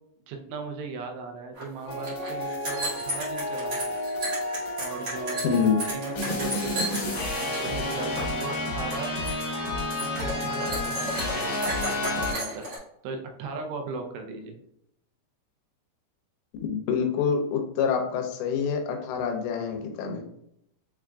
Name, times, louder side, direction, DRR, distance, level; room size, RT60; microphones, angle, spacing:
voice 1, 0.3-3.9 4.8-5.4 5.9-9.1 10.0-12.7 13.0-14.6, right 4 dB, 80° right, 4 dB, 2.8 m, -38 dB
sound 1, 1.6-1.7 1.9-7.6 7.9-8.4 8.7-8.9 9.2-9.5 9.9-12.8, right 1 dB, 65° right, 1.4 m, -34 dB
sound 2, 1.9-12.3, left 1 dB, 60° left, 2.4 m, -31 dB
voice 2, 5.4-5.8 16.6-20.2, left 6 dB, 85° left, 3 dB, 2.9 m, -26 dB
7.1 x 2.4 x 2.2 m, 0.77 s
omnidirectional pair, 5.1 m